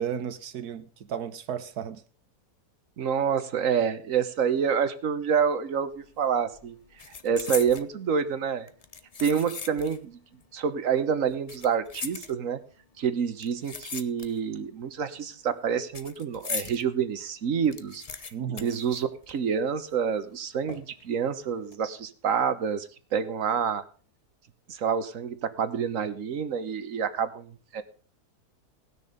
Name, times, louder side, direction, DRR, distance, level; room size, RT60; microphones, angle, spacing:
voice 1, 0.0-2.0 18.3-18.8, right 8 dB, 75° right, 1.5 m, -34 dB
voice 2, 3.0-6.8 7.2-8.7 9.2-10.2 10.5-12.6 13.0-18.0 18.6-23.8 24.7-27.8, right 7 dB, 60° right, 1.4 m, -27 dB
sound 1, 5.9-6.2 6.5-7.9 8.7-10.1 10.4-10.5 11.3-12.7 13.4-14.6 14.9-16.8 17.2-17.3 17.5-19.6 19.9-20.0 20.7-21.1 21.5-21.7, left 5 dB, 40° left, 0.6 m, -39 dB
18.5 x 6.6 x 5.2 m
omnidirectional pair, 1.7 m